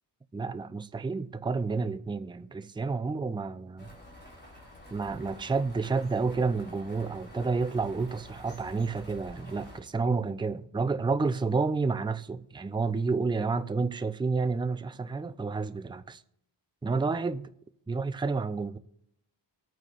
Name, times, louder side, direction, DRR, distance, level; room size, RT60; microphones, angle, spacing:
voice 1, 0.3-3.9 4.9-16.2 16.8-17.5 17.9-18.8, right 4 dB, 10° right, 0.5 m, -30 dB
sound 1, 3.8-9.8, left 1 dB, 25° left, 4.9 m, -49 dB
23.5 x 9.2 x 2.5 m
cardioid pair, 90°, 43 cm